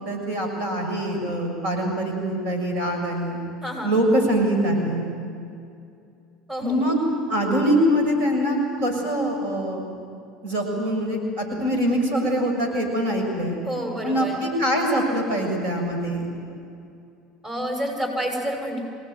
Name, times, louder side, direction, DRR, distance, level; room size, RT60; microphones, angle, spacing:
voice 1, 0.0-3.4 3.8-5.0 6.6-7.0 7.3-9.9 10.4-13.6 14.0-16.3, equal, 65° right, 2 dB, 6.9 m, -23 dB
voice 2, 6.5-6.9 13.6-14.4 17.4-18.8, equal, 20° right, 2 dB, 6.6 m, -29 dB
27.5 x 18.5 x 9.4 m, 2.5 s
hypercardioid pair, 80°, 3 cm